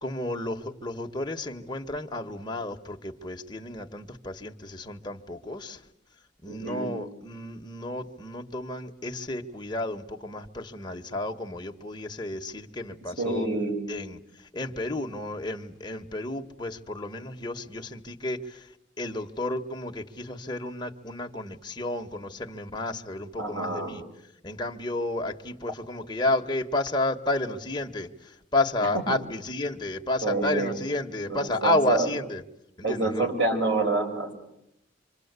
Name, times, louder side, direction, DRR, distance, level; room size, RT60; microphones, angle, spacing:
voice 1, 0.0-5.8 6.4-13.5 13.9-18.7 19.0-24.0 24.4-32.4 32.8-33.3, left 2 dB, 25° left, 2 dB, 1.4 m, -31 dB
voice 2, 6.5-6.9 13.2-13.9 23.4-24.0 28.8-29.0 30.2-30.8 31.3-32.1 32.8-34.3, right 2 dB, 75° right, 2 dB, 6.1 m, -28 dB
26.0 x 25.5 x 8.2 m, 0.80 s
head